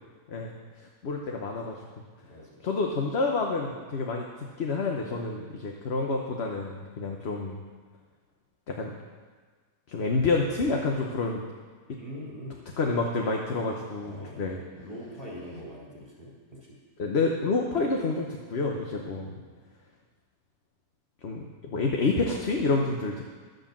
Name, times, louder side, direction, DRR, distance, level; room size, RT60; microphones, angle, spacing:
voice 1, 0.8-1.8 2.6-4.3 4.6-7.6 8.7-8.9 9.9-11.4 12.8-14.6 17.0-19.3 21.2-23.2, left 3 dB, 50° left, 1 dB, 1.1 m, -28 dB
voice 2, 2.3-2.7 12.0-12.6 14.0-16.8 19.1-19.5, equal, 25° left, -6 dB, 4.1 m, -43 dB
11.5 x 8.1 x 7.3 m, 1.5 s
omnidirectional pair, 1.5 m